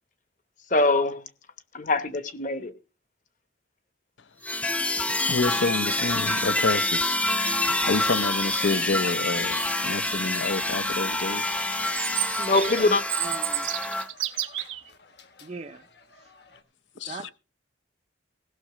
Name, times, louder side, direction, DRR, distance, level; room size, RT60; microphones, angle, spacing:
voice 1, 0.7-1.3 1.7-2.7 12.4-13.0, left 2 dB, 40° left, 1.0 m, -23 dB
sound 1, 4.4-14.1, left 1 dB, 5° left, 0.6 m, -27 dB
voice 2, 5.3-7.2 7.7-11.6 17.0-17.3, left 3 dB, 75° left, 0.7 m, -28 dB
sound 2, 8.1-16.6, left 5 dB, 55° left, 1.3 m, -44 dB
Chirp tweet, 11.8-14.8, right 14 dB, 85° right, 0.9 m, -30 dB
voice 3, 12.6-12.9 13.2-13.7 15.4-15.9 16.2-16.3 17.0-17.3, right 3 dB, 35° right, 0.5 m, -40 dB
16.5 x 6.4 x 4.9 m
head